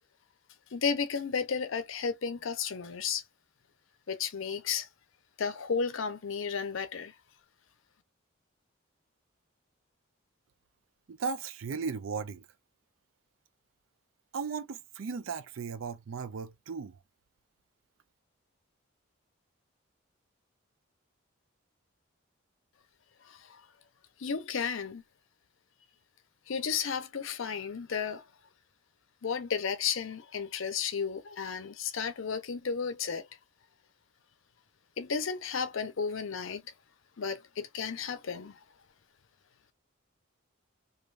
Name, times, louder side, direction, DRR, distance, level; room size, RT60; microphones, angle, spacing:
voice 1, 0.7-3.2 4.1-4.9 5.4-7.1 23.2-23.6 24.2-25.0 26.5-28.2 29.2-33.2 35.0-36.6 37.2-38.6, left 6 dB, 70° left, 0.6 m, -33 dB
voice 2, 11.1-12.4 14.3-17.0, right 5 dB, 70° right, 0.4 m, -36 dB
3.2 x 2.5 x 2.4 m
head